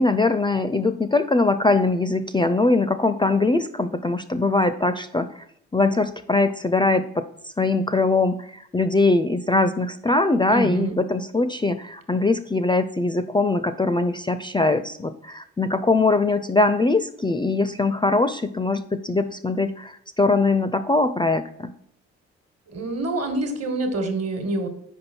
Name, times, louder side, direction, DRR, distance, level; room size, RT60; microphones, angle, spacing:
voice 1, 0.0-5.3 5.7-7.2 7.6-21.7, left 3 dB, 15° left, 11 dB, 0.4 m, -21 dB
voice 2, 10.5-10.9 22.7-24.7, right 2 dB, 50° right, 7 dB, 1.4 m, -26 dB
5.4 x 5.1 x 4.4 m, 0.68 s
hypercardioid pair, 45°, 33 cm